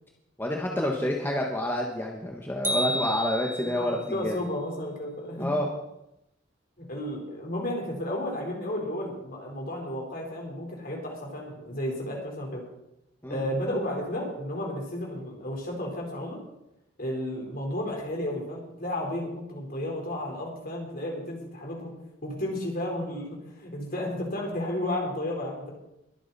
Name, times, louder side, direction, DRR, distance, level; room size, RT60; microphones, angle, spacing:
voice 1, 0.4-4.4 5.4-5.7 13.2-13.4, left 1 dB, 10° left, -1 dB, 1.4 m, -28 dB
sound 1, 2.6-4.0, equal, 10° right, 1.6 m, -31 dB
voice 2, 3.6-5.5 6.8-12.6 13.3-16.4 17.0-22.0 22.2-25.7, left 1 dB, 50° left, 0 dB, 4.2 m, -33 dB
22.0 x 8.9 x 4.2 m, 0.85 s
head